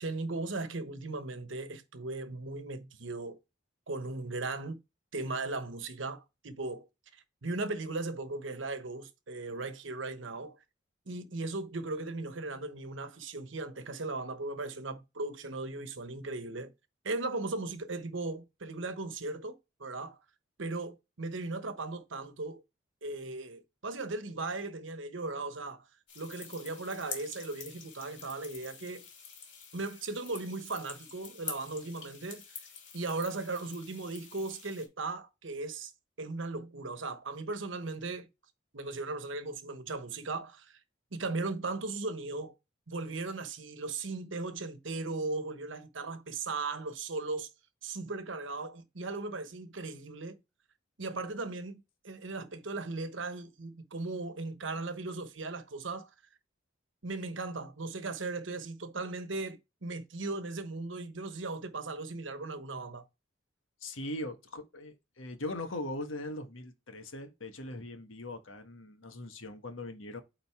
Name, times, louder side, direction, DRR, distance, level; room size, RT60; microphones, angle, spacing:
voice 1, 0.0-3.4 3.9-4.8 5.1-6.9 7.1-10.6 11.1-16.7 17.0-20.2 20.6-22.6 23.0-25.9 26.1-29.1 29.7-32.4 32.9-35.9 36.2-38.3 38.7-40.8 41.1-42.5 42.9-47.5 47.8-50.4 51.0-56.1 57.0-63.1, right 3 dB, 75° right, 1.1 m, -37 dB
sound 1, 26.1-34.9, left 6 dB, 65° left, 2.8 m, -47 dB
voice 2, 63.8-70.2, left 1 dB, 85° left, 1.5 m, -40 dB
9.0 x 3.9 x 3.6 m
head